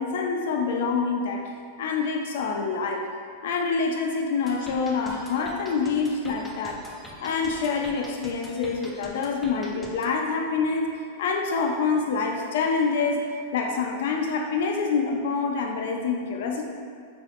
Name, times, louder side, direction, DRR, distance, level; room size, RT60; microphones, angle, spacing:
voice 1, 0.0-1.5 1.8-3.0 3.4-6.8 7.2-10.9 11.2-13.2 13.5-16.6, left 4 dB, 70° left, 2 dB, 0.5 m, -26 dB
sound 1, 4.5-10.1, left 1 dB, 5° left, 0.4 m, -45 dB
3.8 x 3.4 x 2.5 m, 2.3 s
supercardioid pair, 150°, 0 cm